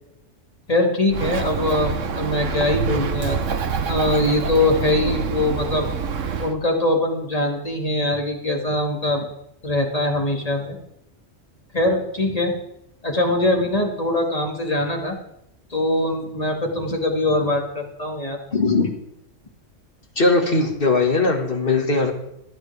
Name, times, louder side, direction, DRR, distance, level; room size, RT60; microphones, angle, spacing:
voice 1, 0.7-3.4 3.9-5.9 6.4-9.3 9.6-10.8 11.7-12.5 13.0-15.2 15.7-18.4, left 2 dB, 30° left, 1 dB, 2.1 m, -22 dB
Bird, 1.1-6.5, right 6 dB, 75° right, 1.3 m, -26 dB
voice 2, 18.5-18.9 20.2-22.1, left 3 dB, 45° left, 3 dB, 2.1 m, -19 dB
25.5 x 9.4 x 3.5 m, 0.80 s
omnidirectional pair, 1.3 m